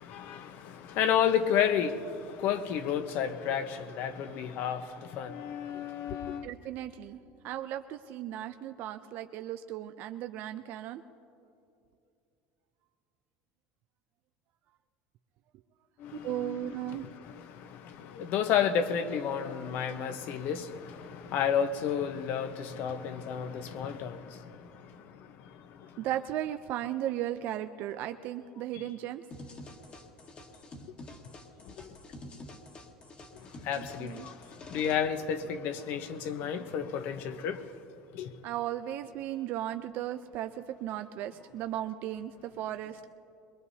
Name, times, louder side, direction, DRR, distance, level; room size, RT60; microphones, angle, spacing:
voice 1, 0.0-6.5 16.0-24.6 28.7-28.8 33.6-34.3 34.7-37.6 38.1-38.3, left 8 dB, 60° left, 1.0 m, -31 dB
voice 2, 6.4-7.2 7.4-11.0 16.2-17.1 26.0-29.2 33.7-34.3 38.4-43.1, right 12 dB, 60° right, 0.5 m, -36 dB
sound 1, 29.3-34.9, left 2 dB, 35° left, 1.6 m, -48 dB
22.5 x 21.5 x 2.8 m
supercardioid pair, 125°, 4 cm